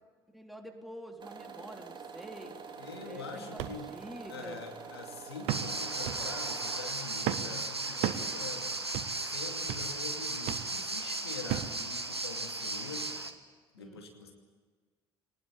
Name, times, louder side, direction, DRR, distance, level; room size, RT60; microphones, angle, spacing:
voice 1, 0.3-2.6 3.0-4.7 13.8-14.1, equal, ahead, 3 dB, 3.6 m, -47 dB
sound 1, 1.2-6.9, right 6 dB, 35° right, 2.7 m, -46 dB
voice 2, 2.8-3.9 4.3-8.7 9.1-13.2 13.7-14.3, left 4 dB, 80° left, 3 dB, 2.6 m, -44 dB
sound 2, 3.6-3.8 4.3-4.4 5.5-5.8 6.1-6.3 7.3-7.5 8.0-8.3 8.9-9.2 9.7-9.9 10.5-10.7 11.5-11.8 12.5-12.6, right 12 dB, 60° right, 1.3 m, -34 dB
sound 3, 5.5-13.3, right 2 dB, 90° right, 1.1 m, -36 dB
23.5 x 19.5 x 8.5 m, 1.5 s
figure-of-eight pair, 55°, 13 cm